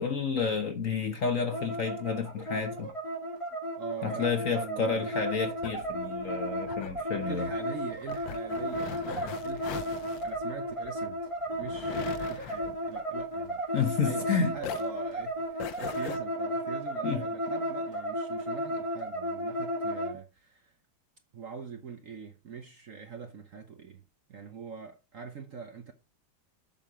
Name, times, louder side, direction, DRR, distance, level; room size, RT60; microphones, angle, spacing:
voice 1, 0.0-2.9 4.0-7.5 13.7-14.5 17.0-17.2, left 5 dB, 50° left, 1.1 m, -30 dB
sound 1, 1.5-20.2, equal, 15° right, 1.3 m, -34 dB
voice 2, 3.8-5.1 7.1-9.9 10.2-20.7 21.3-24.0 24.3-25.9, right 6 dB, 55° right, 1.0 m, -43 dB
sound 2, 5.2-14.3 14.6-16.2, left 11 dB, 70° left, 1.4 m, -42 dB
7.6 x 6.5 x 3.7 m
omnidirectional pair, 2.2 m